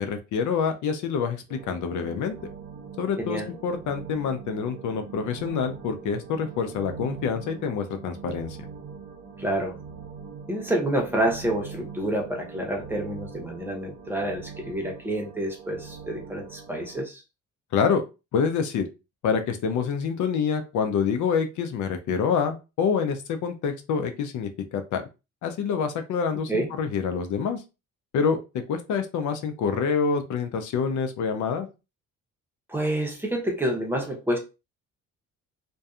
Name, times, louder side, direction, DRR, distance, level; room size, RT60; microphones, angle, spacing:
voice 1, 0.0-2.3 3.0-8.6 17.7-18.0 18.3-18.9 19.2-25.0 25.4-27.6 28.1-28.4 28.7-31.7, left 6 dB, 75° left, 0.6 m, -26 dB
sound 1, 1.5-17.0, right 6 dB, 50° right, 0.7 m, -42 dB
voice 2, 3.2-3.5 9.4-9.7 10.5-17.2 26.5-26.7 32.7-34.4, right 1 dB, 5° right, 0.8 m, -28 dB
2.6 x 2.2 x 2.4 m
cardioid pair, 90°, 30 cm